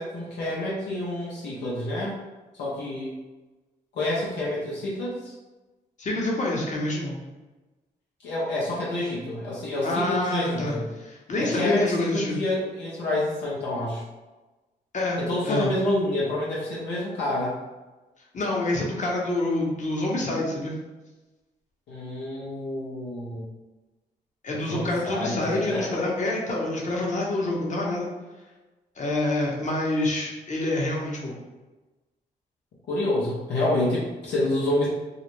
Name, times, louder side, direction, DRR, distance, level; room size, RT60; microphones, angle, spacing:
voice 1, 0.0-2.2 2.6-3.1 3.9-5.3 8.2-10.9 11.4-14.0 15.2-17.6 21.9-23.5 24.5-25.9 32.9-34.9, left 1 dB, 75° left, -6 dB, 0.7 m, -28 dB
voice 2, 6.0-7.2 9.8-12.4 14.9-15.7 18.3-20.8 24.4-28.1 29.0-31.4, left 2 dB, 45° left, -3 dB, 0.9 m, -27 dB
2.3 x 2.0 x 3.0 m, 1.1 s
supercardioid pair, 50°, 18 cm